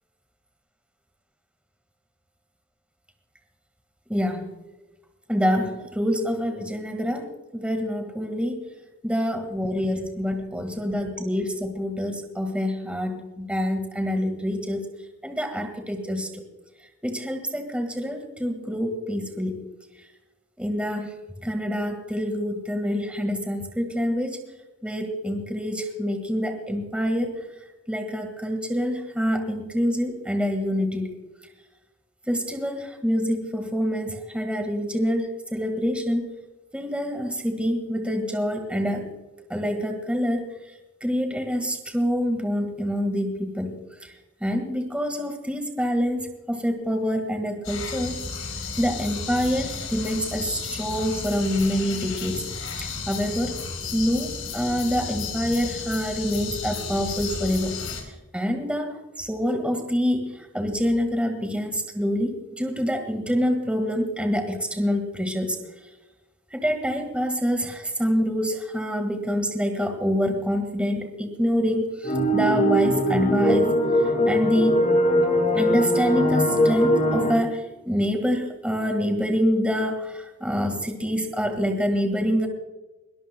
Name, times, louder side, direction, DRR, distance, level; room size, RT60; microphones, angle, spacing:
voice 1, 4.1-4.6 5.3-8.6 9.0-14.8 15.2-16.4 17.0-19.7 20.6-21.1 21.4-24.4 24.8-27.4 27.9-31.1 32.3-36.2 36.7-39.1 39.5-40.4 41.0-44.1 44.4-48.2 48.8-53.5 53.9-57.9 58.3-65.6 66.5-73.7 74.3-74.8 75.5-82.5, equal, 5° right, 5 dB, 1.7 m, -26 dB
sound 1, 47.6-58.0, left 4 dB, 80° left, 3.9 m, -33 dB
sound 2, 72.0-77.4, equal, 35° left, 2.2 m, -21 dB
21.5 x 20.0 x 2.3 m, 1.1 s
head